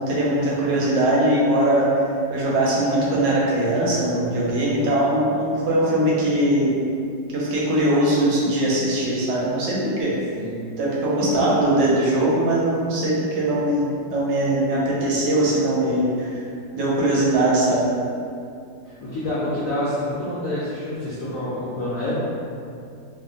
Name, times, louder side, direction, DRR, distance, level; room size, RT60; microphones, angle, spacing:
voice 1, 0.0-1.9 2.3-6.8 7.3-10.2 10.8-16.4 16.7-17.9, right 1 dB, 80° right, -5 dB, 1.3 m, -21 dB
voice 2, 11.2-12.3 15.4-16.0 18.8-22.2, left 1 dB, 80° left, -9 dB, 0.7 m, -28 dB
2.8 x 2.4 x 2.4 m, 2.5 s
omnidirectional pair, 2.0 m